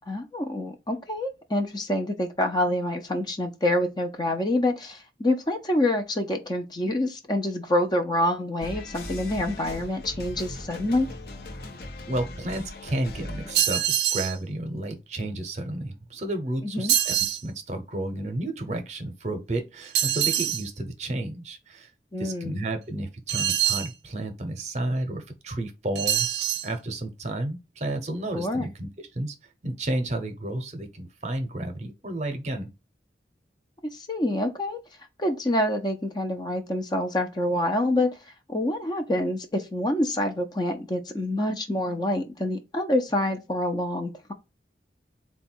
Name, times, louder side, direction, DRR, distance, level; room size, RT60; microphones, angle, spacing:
voice 1, 0.1-11.1 16.7-16.9 22.1-22.6 28.3-28.7 33.9-34.8 35.2-38.2 38.5-44.3, left 1 dB, 25° left, 0.5 m, -26 dB
sound 1, 8.6-13.6, left 1 dB, 60° left, 0.8 m, -39 dB
voice 2, 12.1-21.9 22.2-29.3 29.6-32.7, right 1 dB, 40° right, 0.7 m, -32 dB
sound 2, 13.5-14.4 16.9-17.4 19.9-20.7 23.3-23.9 26.0-26.7, right 11 dB, 70° right, 0.5 m, -24 dB
3.9 x 2.3 x 4.3 m
head